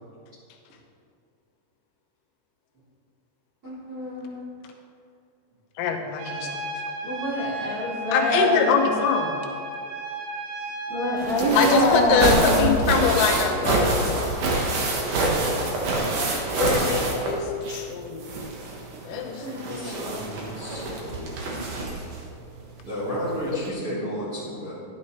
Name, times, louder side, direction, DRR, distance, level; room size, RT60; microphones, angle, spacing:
voice 1, 3.6-4.4 7.0-9.0 10.9-12.9 15.9-16.1 19.4-20.2 20.7-21.0, equal, 25° right, -10 dB, 2.5 m, -26 dB
voice 2, 5.8-6.5 8.1-9.4 11.5-14.9 16.5-18.4 19.1-19.4, left 6 dB, 90° left, 3 dB, 3.7 m, -24 dB
Trumpet, 6.2-11.4, right 2 dB, 70° right, 3.5 m, -34 dB
sound 1, 11.2-17.9 18.2-22.2 23.2-23.3 23.6-23.7, right 2 dB, 90° right, 1.7 m, -26 dB
voice 3, 19.7-22.0 22.8-24.7, equal, 45° right, -9 dB, 1.7 m, -33 dB
12.5 x 11.5 x 3.2 m, 2.4 s
omnidirectional pair, 5.8 m